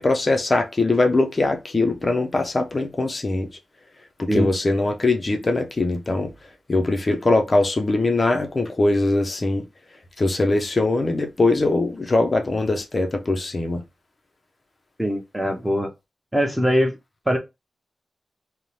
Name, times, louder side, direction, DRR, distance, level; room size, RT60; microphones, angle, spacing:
voice 1, 0.0-3.5 4.2-6.3 6.7-9.7 10.2-13.8, left 2 dB, 40° left, 0.4 m, -21 dB
voice 2, 15.0-15.9 16.3-16.9 17.3-17.4, equal, 10° right, 0.7 m, -21 dB
2.6 x 2.0 x 3.0 m
cardioid pair, 80°, 0 cm